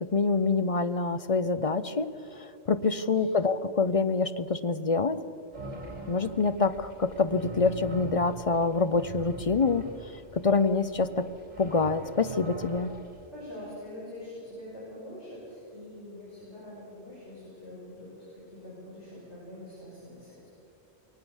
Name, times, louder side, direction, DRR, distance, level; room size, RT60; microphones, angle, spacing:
voice 1, 0.0-5.2 6.1-9.8 10.3-11.3 11.6-12.9, left 4 dB, 40° left, 12 dB, 0.6 m, -26 dB
sound 1, 5.5-13.3, right 1 dB, 40° right, 2.9 m, -43 dB
voice 2, 13.3-20.5, left 1 dB, 90° left, -8 dB, 7.0 m, -44 dB
22.0 x 19.0 x 7.1 m, 2.7 s
omnidirectional pair, 1.1 m